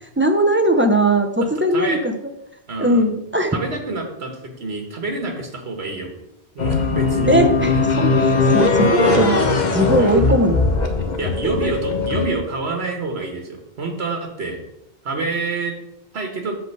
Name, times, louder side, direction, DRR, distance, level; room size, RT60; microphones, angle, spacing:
voice 1, 0.2-2.1 2.8-3.6 7.3-9.4 9.7-10.7, right 1 dB, 15° right, 4 dB, 0.6 m, -19 dB
voice 2, 2.7-3.0 3.5-6.1 6.5-7.4 8.9-9.3 10.0-10.3 11.2-14.6 15.0-15.8 16.1-16.6, right 3 dB, 80° right, 3 dB, 1.6 m, -27 dB
sound 1, 6.6-12.3, left 3 dB, 45° left, 1.0 m, -19 dB
7.8 x 3.8 x 6.6 m, 0.86 s
omnidirectional pair, 1.1 m